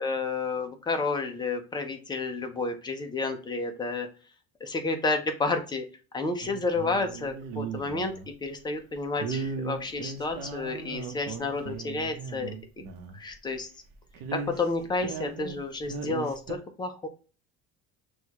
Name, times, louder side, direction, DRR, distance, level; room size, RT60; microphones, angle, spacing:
voice 1, 0.0-4.1 4.6-5.9 6.1-8.1 8.4-12.5 13.1-13.7 14.3-17.1, left 3 dB, 10° left, 5 dB, 0.3 m, -30 dB
sound 1, 6.4-8.3 9.2-13.2 13.5-13.6 13.9-15.6 15.8-16.6, right 5 dB, 55° right, 0.8 m, -37 dB
6.2 x 2.3 x 2.8 m, 0.35 s
cardioid pair, 155°, 40 cm